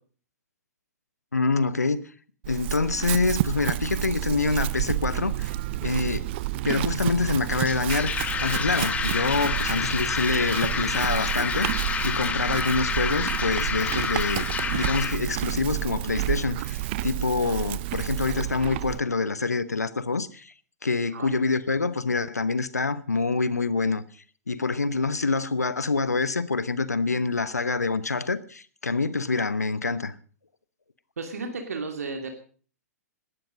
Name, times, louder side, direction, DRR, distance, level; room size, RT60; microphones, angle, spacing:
voice 1, 1.3-2.0 2.5-5.5 5.8-6.3 6.6-8.1 8.4-20.5 20.8-24.0 24.5-30.1, left 4 dB, 80° left, 1.0 m, -26 dB
Chewing mastication / Livestock farm animals working animals, 2.4-19.0, right 16 dB, 45° right, 0.6 m, -30 dB
sound 1, 7.5-15.2, left 6 dB, 15° left, 1.6 m, -29 dB
voice 2, 31.2-32.3, right 4 dB, 70° right, 2.7 m, -33 dB
18.0 x 12.5 x 5.1 m
figure-of-eight pair, 110°, 9 cm